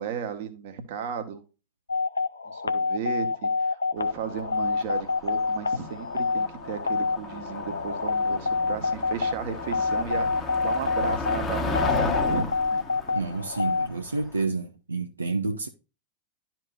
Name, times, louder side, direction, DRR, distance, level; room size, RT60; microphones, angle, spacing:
voice 1, 0.0-1.4 2.5-12.8, right 7 dB, 50° right, 1.5 m, -35 dB
sound 1, 1.9-13.9, left 4 dB, 75° left, 0.5 m, -27 dB
Motor vehicle (road), 4.0-14.4, left 3 dB, 20° left, 1.3 m, -34 dB
voice 2, 13.1-15.7, right 3 dB, 80° right, 0.7 m, -29 dB
12.0 x 4.5 x 2.5 m
figure-of-eight pair, 90°, 0 cm